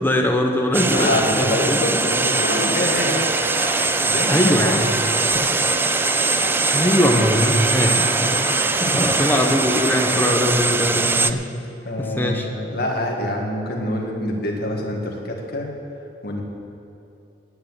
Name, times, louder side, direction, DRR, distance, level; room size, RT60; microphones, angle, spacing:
voice 1, 0.0-1.8 4.3-4.9 6.6-8.3 8.9-11.5 12.0-12.5, left 1 dB, 10° left, 2 dB, 1.1 m, -21 dB
sound 1, 0.7-11.3, right 3 dB, 10° right, 0.3 m, -21 dB
voice 2, 0.9-3.2 4.0-4.7 5.3-5.4 8.8-9.1 11.9-15.7 16.2-16.4, left 1 dB, 60° left, 0 dB, 2.0 m, -25 dB
sound 2, 2.3-10.2, right 1 dB, 55° right, 2.6 m, -30 dB
10.5 x 9.6 x 8.0 m, 2.7 s
head